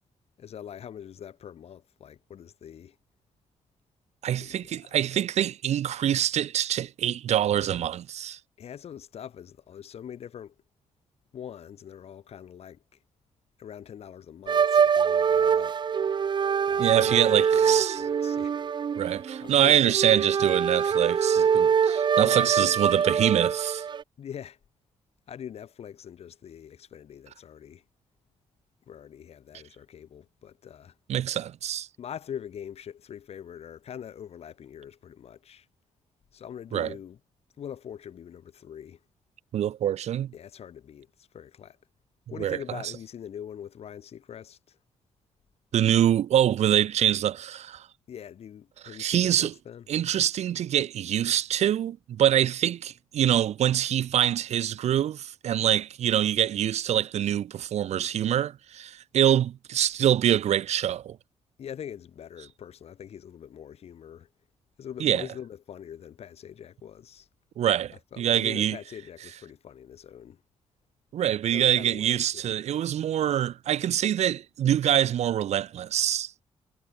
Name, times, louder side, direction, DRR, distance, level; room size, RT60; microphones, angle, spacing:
voice 1, 0.4-3.0 4.4-5.0 8.6-10.5 11.3-12.8 13.6-15.8 16.6-18.6 19.4-20.6 22.2-22.8 24.2-24.6 25.3-27.8 28.9-31.0 32.0-35.7 36.3-37.2 37.6-39.0 40.3-41.8 42.3-44.8 48.1-49.9 61.6-64.3 64.8-67.3 68.1-70.4 71.5-72.5, left 9 dB, 65° left, 3.6 m, -43 dB
voice 2, 4.2-8.4 16.8-17.9 19.0-23.8 31.1-31.9 36.7-36.9 39.5-40.3 42.4-42.6 45.7-47.9 49.0-49.5 49.9-61.2 65.0-65.2 67.6-68.8 71.1-76.3, right 10 dB, 75° right, 1.3 m, -25 dB
sound 1, 14.5-24.0, right 7 dB, 45° right, 0.6 m, -24 dB
cardioid pair, 110°, 11 cm